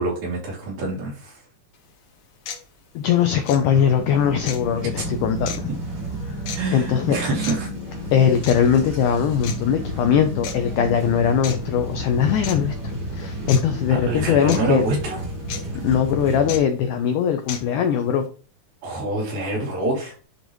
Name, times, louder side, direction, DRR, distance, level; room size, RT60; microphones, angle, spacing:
voice 1, 0.0-1.4 5.0-5.1 6.5-7.7 13.9-15.2 18.8-20.2, right 2 dB, 75° right, -4 dB, 4.6 m, -26 dB
sound 1, 1.7-1.8 2.5-2.6 3.4-3.6 4.5-4.6 5.5-5.6 6.5-6.6 7.4-7.6 8.4-8.6 9.4-9.6 10.4-10.5 11.4-11.6 12.4-12.6 13.5-13.6 14.5-14.6 15.5-15.6 16.5-16.6 17.5-17.6, left 7 dB, 60° left, 2.7 m, -32 dB
voice 2, 3.0-5.7 6.7-7.2 8.1-14.8 15.8-18.3, left 8 dB, 85° left, 6 dB, 1.8 m, -20 dB
sound 2, 3.9-16.6, right 1 dB, 40° right, 2.3 m, -31 dB
10.0 x 4.0 x 3.1 m, 0.37 s
omnidirectional pair, 4.3 m